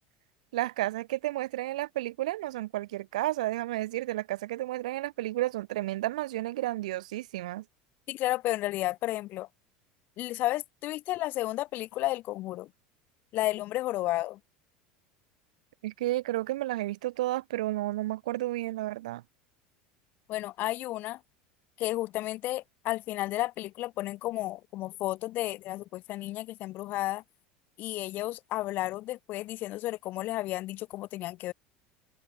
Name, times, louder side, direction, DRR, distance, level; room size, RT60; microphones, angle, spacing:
voice 1, 0.5-7.6 15.8-19.2, right 16 dB, 80° right, 1.5 m, -32 dB
voice 2, 8.1-9.5 10.2-12.7 13.3-14.4 20.3-21.2 21.8-27.2 27.8-31.5, left 16 dB, 55° left, 5.0 m, -32 dB
hypercardioid pair, 90°, 4 cm